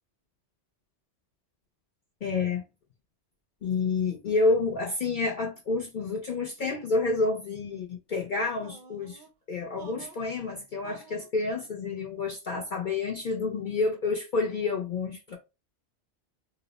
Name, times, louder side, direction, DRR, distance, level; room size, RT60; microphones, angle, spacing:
voice 1, 2.2-2.6 3.6-15.4, left 3 dB, 55° left, 0.6 m, -29 dB
sound 1, 8.6-9.3 9.8-10.3 10.8-11.3, right 4 dB, 55° right, 0.6 m, -48 dB
2.7 x 2.0 x 3.9 m
omnidirectional pair, 1.2 m